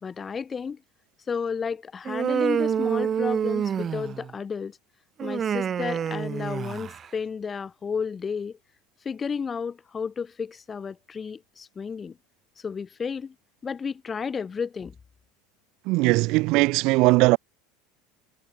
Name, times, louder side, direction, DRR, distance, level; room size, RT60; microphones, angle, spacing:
voice 1, 0.0-0.8 1.3-4.8 5.2-8.6 9.0-12.2 12.6-13.3 13.6-14.9, left 6 dB, 25° left, 2.8 m, -32 dB
Human voice, 2.0-4.3 5.2-7.1, right 8 dB, 30° right, 0.5 m, -27 dB
voice 2, 15.9-17.4, right 23 dB, 55° right, 1.4 m, -19 dB
figure-of-eight pair, 75°, 0 cm